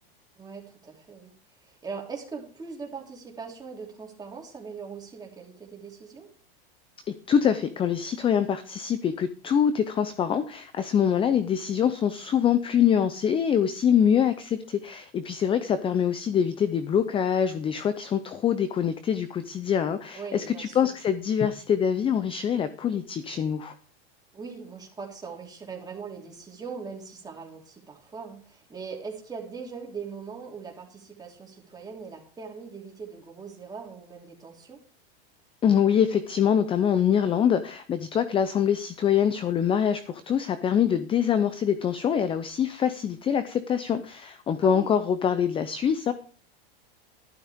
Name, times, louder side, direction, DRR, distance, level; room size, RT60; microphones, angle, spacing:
voice 1, 0.4-1.3 1.6-6.3 20.1-20.9 24.3-34.8 44.6-44.9, right 5 dB, 15° right, -1 dB, 3.2 m, -40 dB
voice 2, 7.3-23.7 35.6-46.1, left 8 dB, 20° left, 13 dB, 0.6 m, -24 dB
12.0 x 11.0 x 3.6 m, 0.42 s
supercardioid pair, 135°, 30 cm